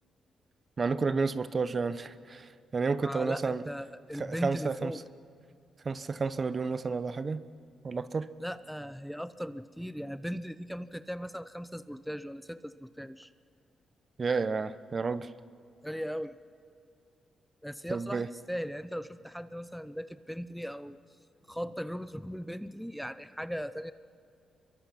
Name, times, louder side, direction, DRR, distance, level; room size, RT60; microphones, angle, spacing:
voice 1, 0.8-3.6 4.2-4.9 5.8-7.4 7.8-8.3 14.2-15.3 17.9-18.3, right 4 dB, 40° right, 14 dB, 0.9 m, -31 dB
voice 2, 3.0-5.0 8.4-13.3 15.8-16.3 17.6-21.0 21.5-23.9, equal, ahead, 13 dB, 0.7 m, -38 dB
26.0 x 23.0 x 5.7 m, 2.4 s
cardioid pair, 70°, 0 cm